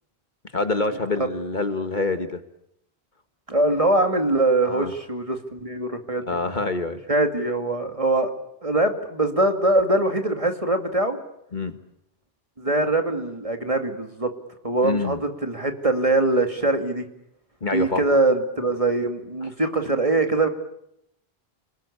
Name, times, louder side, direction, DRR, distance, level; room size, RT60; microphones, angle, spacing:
voice 1, 0.5-2.4 4.6-4.9 6.3-7.0 11.5-11.8 14.8-15.2 17.6-18.0, left 3 dB, 45° left, 9 dB, 1.7 m, -26 dB
voice 2, 3.5-6.3 7.1-8.3 8.6-11.2 12.6-14.3 14.6-17.0 17.7-20.5, right 2 dB, 30° right, 6 dB, 2.4 m, -22 dB
30.0 x 20.5 x 8.6 m, 0.76 s
omnidirectional pair, 1.1 m